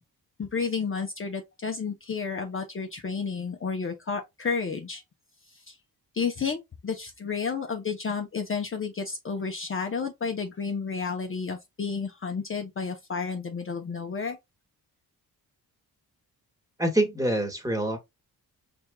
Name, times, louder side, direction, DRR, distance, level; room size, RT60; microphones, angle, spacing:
voice 1, 0.4-5.0 5.5-5.8 6.1-14.4, left 5 dB, 35° left, 0.7 m, -31 dB
voice 2, 16.8-18.0, right 1 dB, 10° right, 1.3 m, -25 dB
4.5 x 3.5 x 2.2 m
cardioid pair, 90°, 38 cm